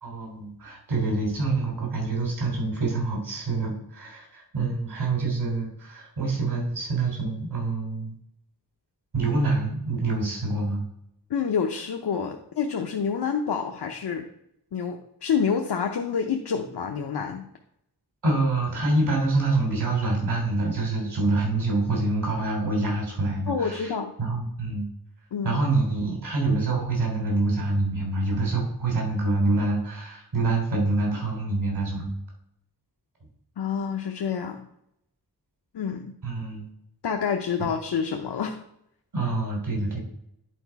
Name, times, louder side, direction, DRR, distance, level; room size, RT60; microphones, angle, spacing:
voice 1, 0.0-8.1 9.1-10.8 18.2-23.9 24.2-24.9 25.4-32.1 36.2-36.7 39.1-40.0, right 2 dB, 80° right, -1 dB, 3.3 m, -26 dB
voice 2, 11.3-14.3 14.7-17.5 23.5-24.1 25.3-25.6 33.6-34.7 35.7-36.1 37.0-38.6, left 6 dB, 80° left, 3 dB, 0.7 m, -28 dB
10.5 x 4.0 x 4.6 m, 0.77 s
wide cardioid pair, 110°, 39 cm